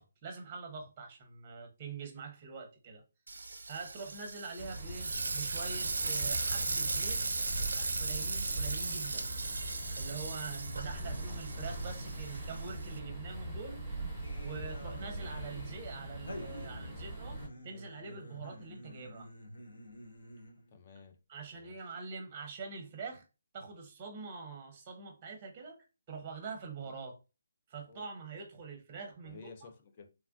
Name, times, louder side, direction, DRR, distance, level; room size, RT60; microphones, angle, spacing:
voice 1, 0.0-3.0 3.7-7.2 7.7-9.3 10.0-13.8 14.4-17.4 17.6-19.3 21.3-23.2 23.5-27.2 27.7-29.5, right 5 dB, 25° right, 0.7 m, -44 dB
Frying (food), 3.3-13.0, right 3 dB, 80° right, 0.4 m, -37 dB
sound 1, 4.6-17.5, right 1 dB, 5° right, 1.4 m, -41 dB
sound 2, 14.2-20.7, equal, 75° left, 1.0 m, -49 dB
voice 2, 20.7-21.2 21.5-22.0 26.8-26.9 27.9-28.1 29.2-30.1, left 4 dB, 30° left, 0.5 m, -53 dB
3.1 x 2.4 x 2.3 m
hypercardioid pair, 165°, 0 cm